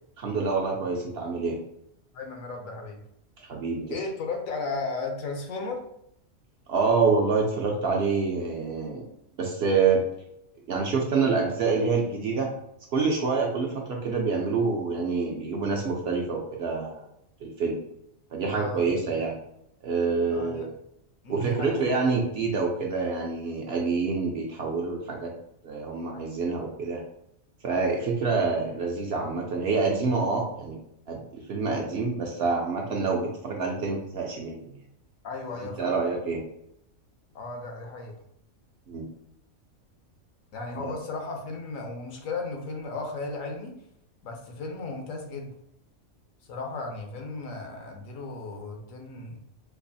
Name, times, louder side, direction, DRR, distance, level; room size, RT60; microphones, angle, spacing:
voice 1, 0.2-1.6 3.5-4.0 6.7-9.0 9.4-10.0 10.7-12.5 12.9-17.0 17.4-17.8 18.3-19.4 19.8-20.7 21.3-25.3 25.6-27.0 27.6-30.8 31.1-34.8 35.8-36.4 38.9-39.1 40.8-41.0, right 4 dB, 60° right, 0 dB, 0.7 m, -27 dB
voice 2, 2.1-3.0 3.9-5.8 18.5-18.9 20.3-20.7 21.2-22.2 35.2-35.9 37.3-38.2 40.5-43.7 44.2-45.6 46.5-49.4, left 3 dB, 75° left, 2 dB, 1.1 m, -35 dB
4.6 x 2.4 x 2.6 m, 0.75 s
omnidirectional pair, 1.4 m